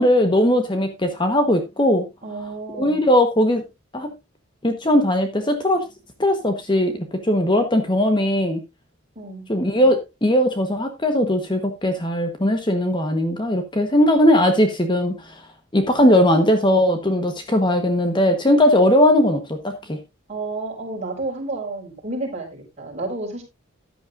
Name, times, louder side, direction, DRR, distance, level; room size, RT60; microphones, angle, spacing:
voice 1, 0.0-2.0 2.8-3.6 3.9-4.1 4.6-5.8 6.2-8.6 9.5-15.4 15.7-20.0, left 1 dB, 25° left, 7 dB, 1.2 m, -19 dB
voice 2, 2.2-3.0 9.1-9.5 20.3-23.4, right 2 dB, 35° right, -1 dB, 5.0 m, -30 dB
13.5 x 10.5 x 2.5 m, 0.24 s
head